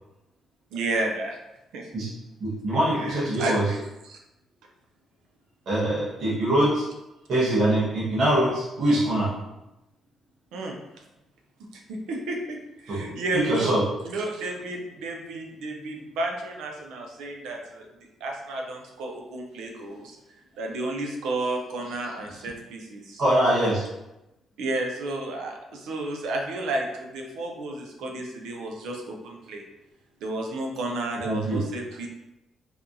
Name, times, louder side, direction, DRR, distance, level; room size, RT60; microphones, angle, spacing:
voice 1, 0.7-1.4 1.7-1.9 2.9-3.8 4.0-4.2 10.5-11.0 11.7-13.8 14.0-17.9 18.2-20.2 20.6-23.2 24.6-29.6 30.2-32.1, right 2 dB, 85° right, 1 dB, 0.6 m, -32 dB
voice 2, 2.4-3.7 5.7-6.8 7.3-9.3 12.9-13.8 19.8-20.0 23.2-23.8 31.2-31.6, right 1 dB, 70° right, -8 dB, 1.1 m, -23 dB
4.3 x 2.3 x 2.6 m, 0.94 s
cardioid pair, 90°, 0 cm